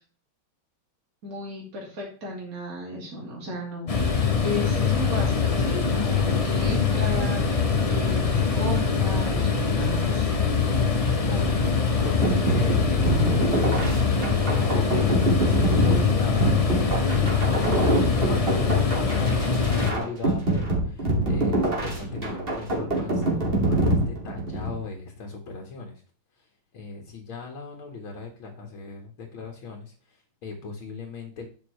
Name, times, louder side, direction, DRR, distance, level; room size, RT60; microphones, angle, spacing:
voice 1, 1.2-10.3, left 2 dB, 40° right, -3 dB, 3.0 m, -35 dB
sound 1, 3.9-19.9, left 5 dB, 40° left, 0.5 m, -23 dB
voice 2, 11.3-26.0 26.4-26.5 26.7-31.5, left 4 dB, 75° left, 0 dB, 2.5 m, -39 dB
sound 2, 12.2-24.8, right 1 dB, 25° right, 2.4 m, -25 dB
11.5 x 7.4 x 3.3 m, 0.40 s
omnidirectional pair, 2.3 m